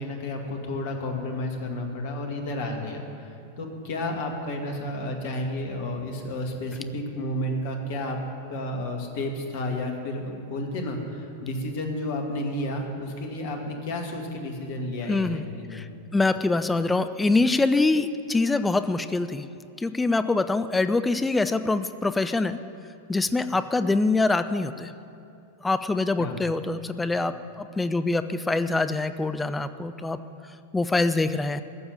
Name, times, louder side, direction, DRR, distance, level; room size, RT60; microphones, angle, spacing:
voice 1, 0.0-8.2 8.5-15.8 26.2-26.5, left 1 dB, 50° left, 2 dB, 2.1 m, -31 dB
voice 2, 15.1-15.4 15.7-19.5 19.8-22.6 23.1-24.9 25.6-30.2 30.7-31.6, left 3 dB, 10° left, 11 dB, 0.5 m, -24 dB
15.0 x 7.1 x 9.5 m, 2.5 s
figure-of-eight pair, 90°, 0 cm